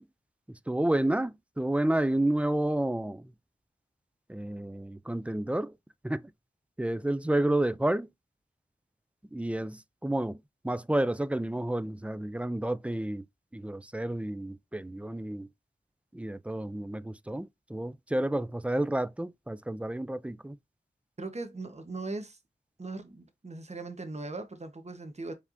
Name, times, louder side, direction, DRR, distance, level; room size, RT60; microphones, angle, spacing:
voice 1, 0.5-3.3 4.3-5.7 6.0-6.3 6.8-8.1 9.3-13.3 13.5-15.5 16.1-20.6, right 1 dB, 5° right, 0.4 m, -30 dB
voice 2, 21.2-22.4 22.8-25.3, right 3 dB, 40° right, 1.0 m, -39 dB
4.8 x 3.3 x 2.6 m
wide cardioid pair, 55°, 18 cm